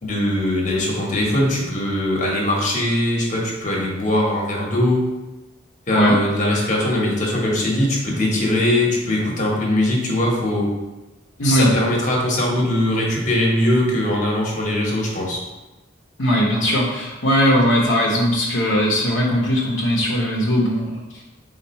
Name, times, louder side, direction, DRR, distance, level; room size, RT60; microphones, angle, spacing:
voice 1, 0.0-5.1 5.9-10.7 11.4-15.4, left 1 dB, 40° left, -2 dB, 1.0 m, -21 dB
voice 2, 11.4-11.7 16.2-21.0, equal, 65° left, -4 dB, 0.7 m, -19 dB
4.4 x 2.4 x 4.2 m, 1.1 s
head